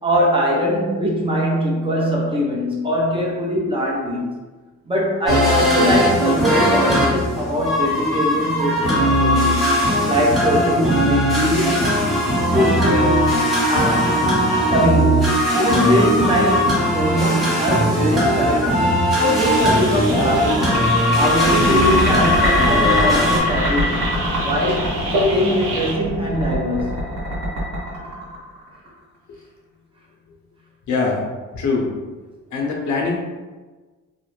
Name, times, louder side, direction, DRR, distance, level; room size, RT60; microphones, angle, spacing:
voice 1, 0.0-4.3 4.9-9.7 10.1-12.0 12.5-13.4 13.7-14.4 14.7-18.8 19.2-20.8 21.2-24.1 24.4-27.0, equal, 20° right, -3 dB, 0.7 m, -21 dB
sound 1, 5.3-23.4, equal, ahead, 1.1 m, -19 dB
sound 2, 19.3-25.9, equal, 85° right, 0.8 m, -27 dB
sound 3, 20.3-28.9, equal, 70° right, 1.3 m, -25 dB
voice 2, 30.9-31.3 31.5-31.9 32.5-33.2, left 4 dB, 70° left, -1 dB, 0.7 m, -22 dB
2.5 x 2.0 x 3.0 m, 1.3 s
cardioid pair, 90°, 30 cm